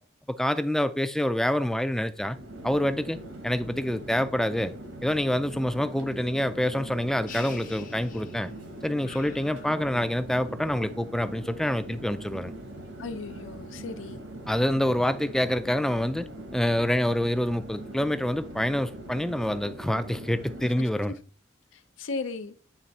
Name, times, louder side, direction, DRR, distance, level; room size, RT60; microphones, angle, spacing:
voice 1, 0.3-2.4 2.6-4.7 5.0-8.5 8.8-12.5 14.5-16.3 16.5-21.1, left 1 dB, 5° left, 0.3 m, -27 dB
Chatter / Fixed-wing aircraft airplane, 2.1-21.1, right 1 dB, 75° right, 1.3 m, -42 dB
sound 1, 7.3-8.6 9.0-10.3, left 8 dB, 45° left, 0.6 m, -46 dB
voice 2, 13.0-14.2 20.6-21.2 21.7-22.5, left 3 dB, 85° left, 0.6 m, -37 dB
8.9 x 3.3 x 4.1 m
head